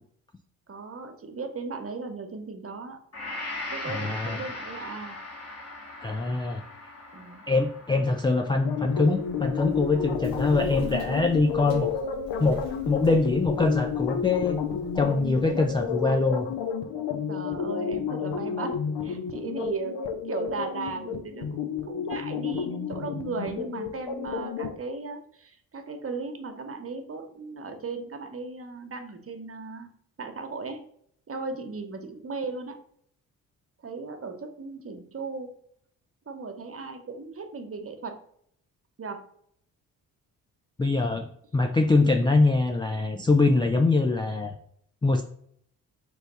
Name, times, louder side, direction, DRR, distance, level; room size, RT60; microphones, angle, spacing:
voice 1, 0.7-3.0 3.7-5.2 7.1-7.4 17.3-18.8 19.0-20.0 20.3-29.9 30.2-30.8 31.3-32.8 33.8-35.5 36.3-38.2 39.0-39.2, right 4 dB, 30° right, 5 dB, 0.9 m, -36 dB
Gong, 3.1-11.2, left 2 dB, 30° left, 1.5 m, -40 dB
voice 2, 3.9-4.4 6.0-6.6 7.5-11.9 12.4-14.6 15.0-16.5 40.8-44.5 45.0-45.2, left 3 dB, 10° left, 5 dB, 0.3 m, -23 dB
sound 1, 8.6-24.8, left 7 dB, 60° left, 0.8 m, -31 dB
Bird, 8.9-16.7, left 1 dB, 90° left, 1.1 m, -44 dB
3.4 x 3.1 x 4.1 m, 0.65 s
hypercardioid pair, 40°, 47 cm